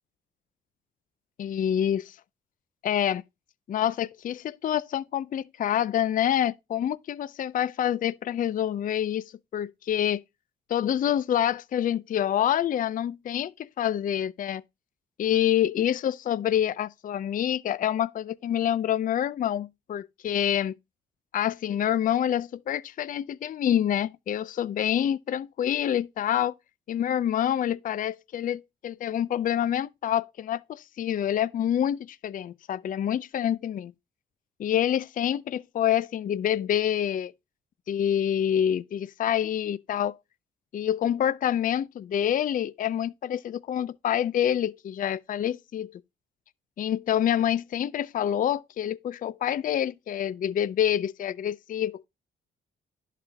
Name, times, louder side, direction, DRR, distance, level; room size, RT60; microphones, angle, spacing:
voice 1, 1.4-2.2 2.8-3.2 3.7-10.2 10.7-14.6 15.2-20.8 21.3-26.5 26.9-33.9 34.6-37.3 37.9-40.2 40.7-46.0 46.8-52.0, left 10 dB, 45° left, 0.4 m, -27 dB
11.0 x 4.1 x 5.3 m
cardioid pair, 90°, 20 cm